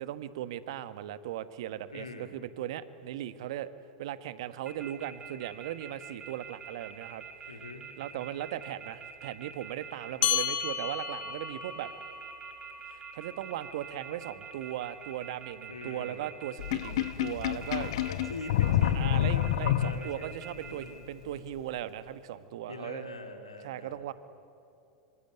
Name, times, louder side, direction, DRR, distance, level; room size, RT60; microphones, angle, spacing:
voice 1, 0.0-3.7 4.0-7.2 8.0-11.9 12.9-17.9 18.9-23.1 23.6-24.1, right 12 dB, 60° right, 14 dB, 1.3 m, -38 dB
voice 2, 1.9-2.3 7.5-7.9 15.7-16.3 18.0-21.0 22.7-24.1, left 3 dB, 85° left, 5 dB, 3.1 m, -43 dB
sound 1, 4.6-20.8, right 6 dB, 25° right, 6.8 m, -45 dB
sound 2, 10.2-15.0, left 9 dB, 35° left, 2.6 m, -35 dB
Sink (filling or washing), 16.6-20.3, left 12 dB, 60° left, 0.9 m, -28 dB
25.5 x 25.0 x 9.2 m, 2.8 s
figure-of-eight pair, 85°, 3 cm